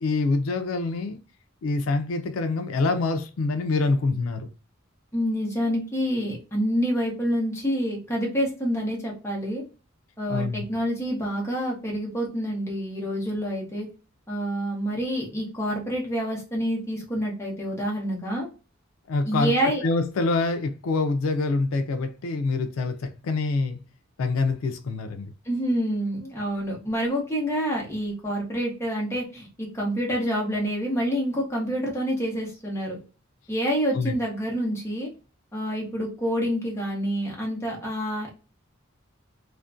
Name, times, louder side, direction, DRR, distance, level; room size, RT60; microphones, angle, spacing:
voice 1, 0.0-1.2 1.6-4.5 10.3-10.6 19.1-19.5 19.8-23.8 24.2-25.3 33.9-34.2, left 3 dB, 90° left, 0.4 m, -25 dB
voice 2, 5.1-9.6 10.2-13.9 14.3-18.5 19.3-19.8 25.4-33.0 33.5-35.1 35.5-38.3, equal, 15° left, 0.8 m, -27 dB
2.4 x 2.1 x 2.4 m
head